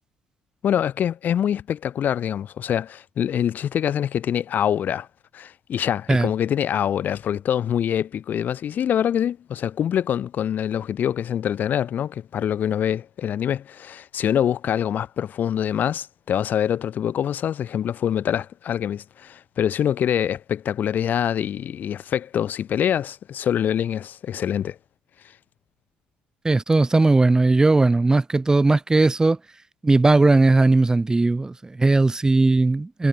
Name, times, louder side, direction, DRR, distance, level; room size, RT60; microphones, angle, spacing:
voice 1, 0.6-5.1 5.3-24.8, left 9 dB, 60° left, 6.3 m, -25 dB
voice 2, 26.4-29.4 29.8-33.1, right 3 dB, 20° right, 4.5 m, -18 dB
supercardioid pair, 75°, 3 cm